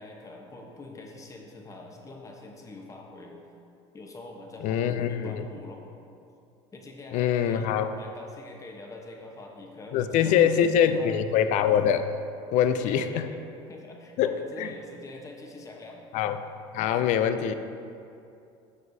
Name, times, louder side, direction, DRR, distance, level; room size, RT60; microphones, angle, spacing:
voice 1, 0.0-3.4 3.9-5.8 6.7-11.2 12.8-13.4 13.7-16.0, left 2 dB, 20° left, 1 dB, 0.9 m, -44 dB
voice 2, 4.6-5.4 7.1-7.9 9.9-12.1 12.5-13.2 14.2-14.7 16.1-16.4 16.7-17.5, left 9 dB, 55° left, 10 dB, 0.4 m, -24 dB
7.3 x 6.1 x 2.7 m, 2.6 s
supercardioid pair, 95°, 15 cm